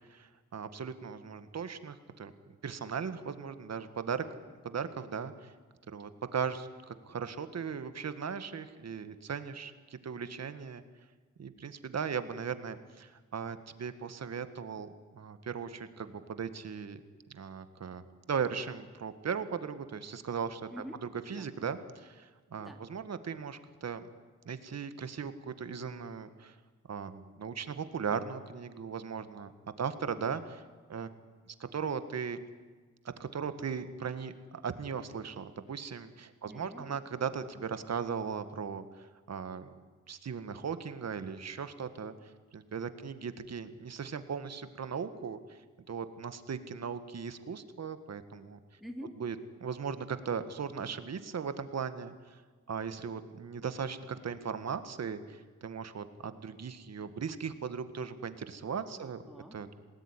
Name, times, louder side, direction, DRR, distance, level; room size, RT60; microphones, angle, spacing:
voice 1, 0.0-2.3 2.6-4.2 4.6-5.5 5.9-10.8 11.4-17.0 17.3-20.7 21.3-24.0 24.4-26.5 26.9-29.5 29.8-30.6 30.9-31.1 31.7-32.4 33.2-39.7 40.1-42.1 42.5-45.6 45.9-48.6 49.2-49.3 49.6-52.4 52.7-59.2 59.5-59.7, right 6 dB, 60° right, 11 dB, 1.8 m, -38 dB
voice 2, 20.7-21.0 21.3-21.5 22.6-22.8 36.4-37.0 48.8-49.2 59.0-59.6, equal, ahead, 3 dB, 2.9 m, -46 dB
28.0 x 19.0 x 9.9 m, 1.4 s
wide cardioid pair, 140°, 30 cm